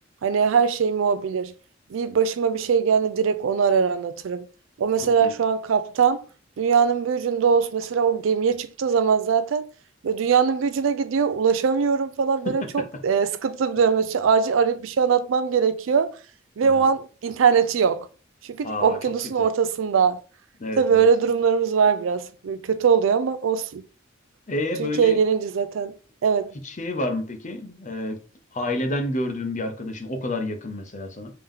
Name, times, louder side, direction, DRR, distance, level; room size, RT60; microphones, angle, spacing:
voice 1, 0.2-1.5 1.9-4.5 4.8-6.2 6.6-9.7 10.0-16.2 16.6-18.1 18.4-20.2 20.8-23.8 24.8-25.9 26.2-26.5, right 6 dB, 75° right, 0.4 m, -21 dB
voice 2, 5.0-5.3 16.6-16.9 18.6-19.0 20.6-21.1 24.5-25.2 26.6-28.2 28.5-31.3, left 1 dB, 40° left, 0.6 m, -29 dB
3.5 x 2.8 x 3.6 m
head